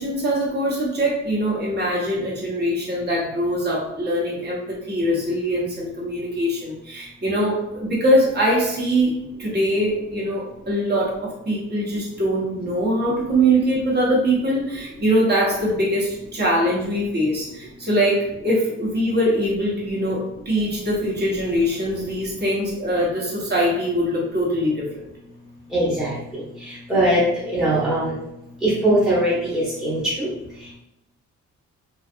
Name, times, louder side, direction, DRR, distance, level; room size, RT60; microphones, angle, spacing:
voice 1, 0.0-25.0, equal, 35° right, -5 dB, 1.0 m, -22 dB
voice 2, 25.7-28.1 28.6-30.3, right 1 dB, ahead, -9 dB, 0.9 m, -21 dB
2.6 x 2.4 x 2.4 m, 0.88 s
cardioid pair, 90°, 30 cm